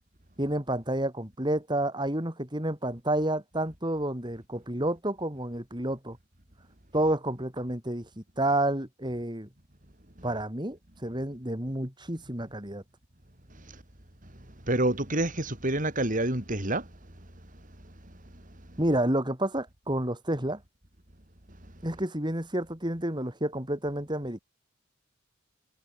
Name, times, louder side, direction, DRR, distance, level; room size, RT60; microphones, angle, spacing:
voice 1, 0.4-6.2 6.9-9.5 10.2-12.8 18.8-20.6 21.8-24.4, right 1 dB, 20° right, 4.6 m, -30 dB
voice 2, 14.7-16.9 18.7-18.8, right 1 dB, 40° right, 4.0 m, -28 dB
head